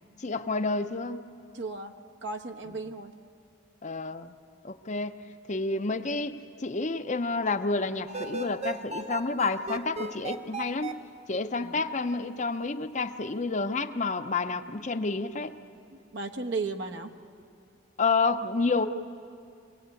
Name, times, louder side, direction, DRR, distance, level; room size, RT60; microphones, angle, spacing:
voice 1, 0.2-1.2 3.8-4.4 4.6-5.1 5.5-11.0 11.3-15.6 18.0-18.9, left 3 dB, 40° left, 9 dB, 0.7 m, -29 dB
voice 2, 1.5-1.9 2.2-3.1 11.6-11.8 16.1-17.1, right 3 dB, 65° right, 4 dB, 1.2 m, -35 dB
sound 1, 8.1-10.9, right 3 dB, 35° right, 0.8 m, -36 dB
25.5 x 18.5 x 8.3 m, 2.4 s
head